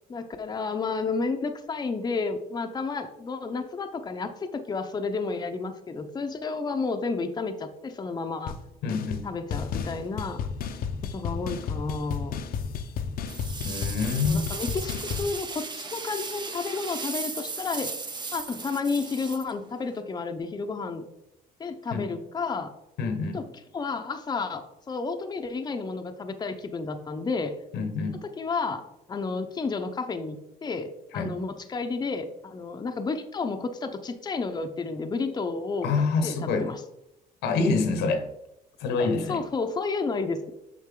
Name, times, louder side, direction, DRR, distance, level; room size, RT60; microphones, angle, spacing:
voice 1, 0.1-8.6 9.2-10.5 11.1-12.4 14.2-17.9 18.3-21.0 21.6-22.7 23.3-23.4 23.7-27.5 28.2-35.9 36.2-36.8 39.3-40.5, left 4 dB, 25° left, 6 dB, 0.7 m, -31 dB
sound 1, 8.5-8.6 8.9-9.2 9.5-15.3, left 6 dB, 60° left, 0.7 m, -33 dB
voice 2, 8.8-9.3 13.6-14.4 21.9-22.1 23.0-23.4 27.7-28.2 31.1-31.3 35.8-36.7 37.4-38.2 38.8-39.4, left 4 dB, 85° left, 7 dB, 1.2 m, -26 dB
sound 2, 13.3-20.0, right 4 dB, 25° right, 0.9 m, -36 dB
7.5 x 5.4 x 3.7 m, 0.84 s
cardioid pair, 110°, 17 cm